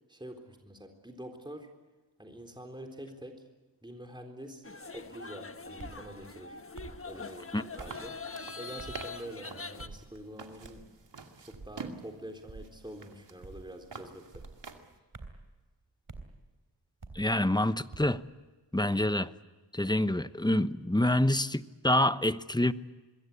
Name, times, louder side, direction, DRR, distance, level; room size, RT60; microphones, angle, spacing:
voice 1, 0.0-1.7 2.2-3.5 3.8-6.6 7.0-8.2 8.6-10.9 11.4-14.4, right 1 dB, 10° right, 3.7 m, -46 dB
sound 1, 4.6-9.9, left 4 dB, 30° left, 1.4 m, -43 dB
sound 2, 5.8-6.0 6.7-7.0 7.8-8.0 8.8-9.1 9.8-10.0 10.6-10.9 11.5-11.8 12.5-12.7 13.4-13.7 14.3-14.6 15.1-15.4 16.1-16.3 17.0-17.3 17.9-18.2, right 3 dB, 45° right, 3.5 m, -46 dB
sound 3, 6.8-15.0, right 5 dB, 80° right, 2.5 m, -48 dB
voice 2, 17.1-18.2 18.7-19.3 19.7-22.7, left 1 dB, 10° left, 1.0 m, -27 dB
26.0 x 21.5 x 8.4 m
cardioid pair, 55°, 43 cm